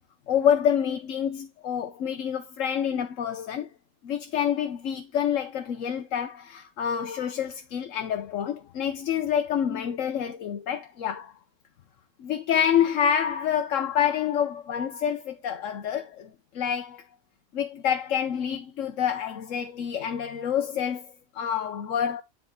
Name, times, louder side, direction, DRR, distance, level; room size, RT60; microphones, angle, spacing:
voice 1, 0.3-3.7 4.0-11.3 12.2-17.0 17.5-22.2, left 9 dB, 90° left, 1.2 m, -27 dB
9.8 x 4.2 x 3.7 m
omnidirectional pair, 1.3 m